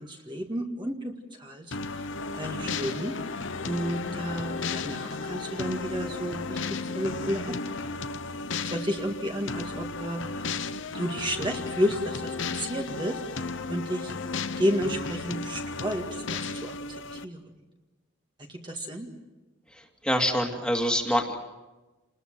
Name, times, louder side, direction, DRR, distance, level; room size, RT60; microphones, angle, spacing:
voice 1, 0.0-2.1 2.4-3.1 3.6-7.8 8.6-10.6 10.9-14.1 14.6-17.4 18.4-19.1, equal, 25° right, 2 dB, 1.9 m, -32 dB
sound 1, 1.7-17.2, left 4 dB, 65° left, 1.0 m, -34 dB
sound 2, 2.1-8.0, left 3 dB, 85° left, 2.5 m, -42 dB
voice 2, 20.0-21.4, equal, 5° left, 3 dB, 2.3 m, -25 dB
29.0 x 20.5 x 7.6 m, 1.1 s
head